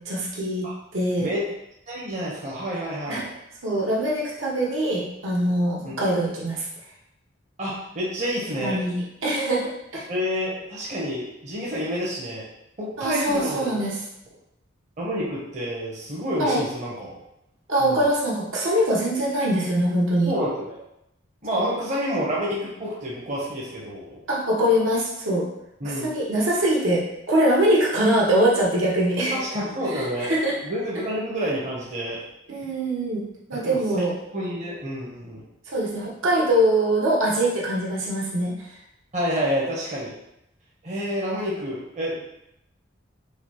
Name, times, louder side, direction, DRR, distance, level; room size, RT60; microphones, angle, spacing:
voice 1, 0.1-0.7 0.9-1.3 3.1-3.2 3.6-6.7 8.6-10.1 13.0-13.9 16.4-16.6 17.7-20.3 21.5-21.6 24.3-25.5 26.0-29.4 29.9-30.6 32.5-33.2 33.5-34.1 35.7-38.5, right 1 dB, 75° right, -4 dB, 0.9 m, -23 dB
voice 2, 1.9-3.3 5.8-6.0 7.6-8.8 10.1-12.5 12.8-13.8 15.0-17.1 17.8-18.0 20.3-20.8 21.4-24.2 25.8-26.1 29.3-30.3 30.6-32.2 33.5-34.0 34.3-35.4 39.1-40.1 40.8-42.2, equal, 35° right, -5 dB, 0.7 m, -28 dB
4.9 x 2.1 x 2.9 m, 0.83 s
head